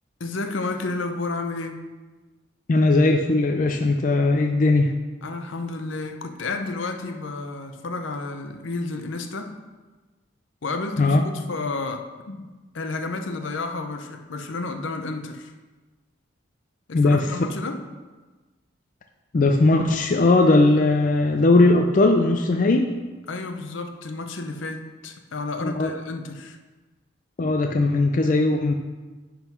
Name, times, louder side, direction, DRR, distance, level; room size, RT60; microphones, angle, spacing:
voice 1, 0.2-1.8 5.2-9.6 10.6-12.5 12.7-15.5 16.9-17.8 23.3-26.6, left 3 dB, 70° left, 6 dB, 0.7 m, -31 dB
voice 2, 2.7-4.9 11.0-11.2 16.9-17.3 19.3-22.9 25.6-25.9 27.4-28.7, left 2 dB, 40° left, 4 dB, 0.4 m, -19 dB
9.1 x 3.9 x 5.5 m, 1.3 s
head